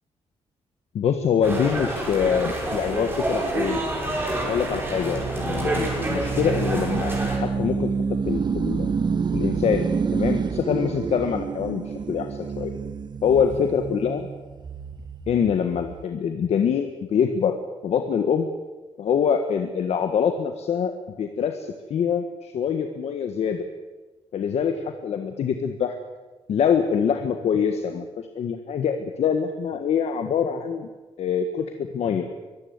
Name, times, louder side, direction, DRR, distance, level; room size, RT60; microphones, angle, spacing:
voice 1, 0.9-3.8 4.3-7.2 7.6-7.9 8.3-8.9 9.3-9.9 10.1-12.7 13.2-14.3 15.3-17.6 17.8-18.5 19.0-20.9 21.2-23.6 24.3-26.0 26.5-30.9 31.2-32.3, left 7 dB, 70° left, 6 dB, 1.6 m, -24 dB
sound 1, 1.4-7.4, right 1 dB, 20° right, 5.9 m, -28 dB
sound 2, 2.3-16.1, right 5 dB, 40° right, 1.3 m, -29 dB
24.0 x 14.0 x 9.6 m, 1.3 s
wide cardioid pair, 135°, 11 cm